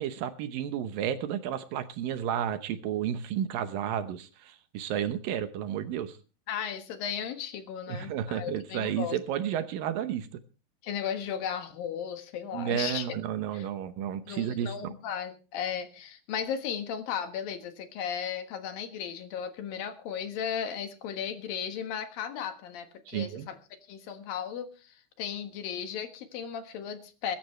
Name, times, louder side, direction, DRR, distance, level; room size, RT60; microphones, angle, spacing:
voice 1, 0.0-6.2 7.9-10.3 12.5-14.9 23.1-23.5, right 9 dB, 75° right, 10 dB, 2.5 m, -32 dB
voice 2, 6.5-9.2 10.8-13.1 13.5-13.7 14.3-23.6 23.9-27.4, left 8 dB, 70° left, 8 dB, 3.1 m, -35 dB
22.0 x 12.0 x 3.2 m, 0.34 s
omnidirectional pair, 4.4 m